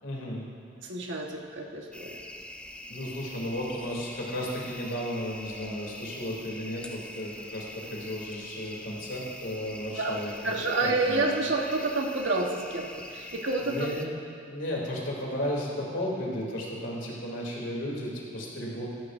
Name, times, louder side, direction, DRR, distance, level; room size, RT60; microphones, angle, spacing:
voice 1, 0.0-0.5 2.9-11.3 13.6-14.1 14.5-18.9, equal, 80° left, -3 dB, 2.9 m, -34 dB
voice 2, 0.8-2.2 10.0-13.9, right 2 dB, 70° right, 1 dB, 1.3 m, -29 dB
sound 1, 1.9-14.1, left 1 dB, 5° left, 0.5 m, -43 dB
15.5 x 14.0 x 2.6 m, 2.4 s
head